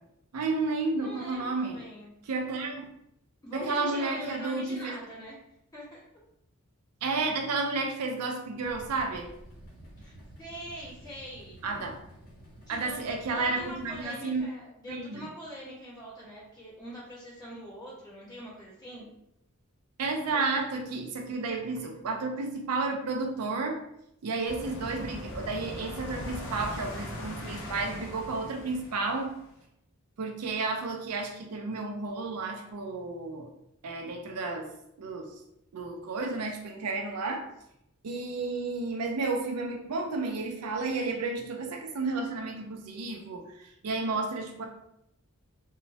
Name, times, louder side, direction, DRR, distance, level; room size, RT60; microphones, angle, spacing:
voice 1, 0.3-1.8 2.3-2.9 3.5-5.0 7.0-9.3 11.6-12.0 12.7-14.4 14.9-15.3 20.0-23.8 24.2-29.3 30.2-33.5 33.8-34.7 35.0-35.3 35.7-37.5 38.0-44.6, right 3 dB, 90° right, 3 dB, 0.5 m, -32 dB
voice 2, 0.9-2.1 3.4-5.3 5.7-6.0 10.0-11.6 12.7-13.0 13.3-19.1, right 1 dB, 20° left, -9 dB, 1.3 m, -43 dB
sound 1, 8.6-14.0, right 1 dB, 45° left, 1.2 m, -50 dB
sound 2, 24.4-29.6, left 1 dB, 60° left, 0.5 m, -40 dB
3.0 x 2.1 x 2.7 m, 0.79 s
head